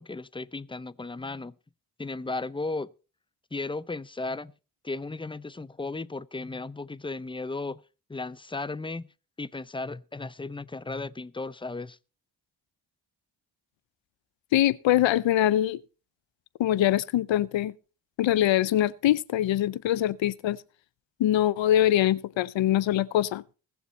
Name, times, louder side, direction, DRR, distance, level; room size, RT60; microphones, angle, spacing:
voice 1, 0.0-1.5 2.0-2.9 3.5-4.5 4.8-7.8 8.1-9.1 9.4-12.0, left 3 dB, 10° left, 0.6 m, -35 dB
voice 2, 14.5-15.8 16.6-17.7 18.2-20.6 21.2-23.4, left 12 dB, 75° left, 0.7 m, -23 dB
21.0 x 7.2 x 4.0 m
cardioid pair, 60°, 46 cm